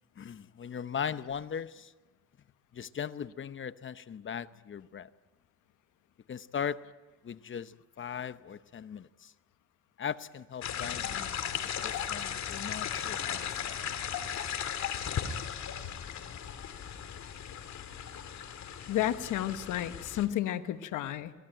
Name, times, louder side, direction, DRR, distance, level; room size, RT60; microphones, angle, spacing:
voice 1, 0.2-1.9 2.7-5.1 6.3-6.8 7.2-9.3 10.0-11.4 11.8-13.8 14.3-14.6, left 7 dB, 40° left, 0.8 m, -39 dB
sound 1, 10.6-20.3, left 8 dB, 65° left, 2.3 m, -36 dB
voice 2, 18.9-21.3, left 12 dB, 85° left, 1.2 m, -32 dB
24.0 x 18.0 x 9.0 m
cardioid pair, 90°, 30 cm